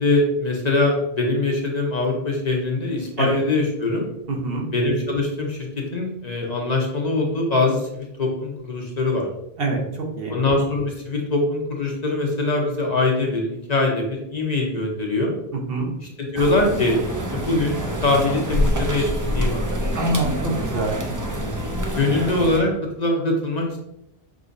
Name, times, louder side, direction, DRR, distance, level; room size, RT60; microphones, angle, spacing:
voice 1, 0.0-4.1 4.7-9.3 10.3-15.3 16.0-17.0 17.3-19.6 22.0-22.7 23.0-23.8, left 2 dB, 45° left, 0 dB, 0.8 m, -22 dB
voice 2, 4.3-4.7 9.6-10.4 15.7-15.9 19.9-21.0, right 2 dB, 65° right, 1 dB, 1.0 m, -25 dB
sound 1, 16.4-22.6, equal, 25° right, 0.4 m, -26 dB
6.2 x 3.0 x 2.6 m, 0.83 s
omnidirectional pair, 1.1 m